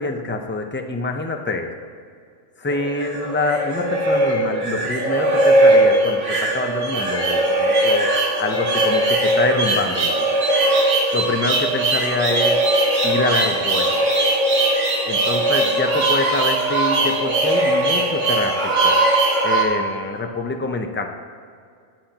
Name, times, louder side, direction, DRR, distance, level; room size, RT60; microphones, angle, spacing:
voice 1, 0.0-1.7 2.6-10.3 11.1-12.7 13.0-14.1 15.1-19.0 19.4-21.1, left 3 dB, 10° left, 4 dB, 0.6 m, -25 dB
sound 1, 2.7-19.7, right 1 dB, 75° right, 1.9 m, -19 dB
20.5 x 7.6 x 3.0 m, 2.2 s
omnidirectional pair, 1.3 m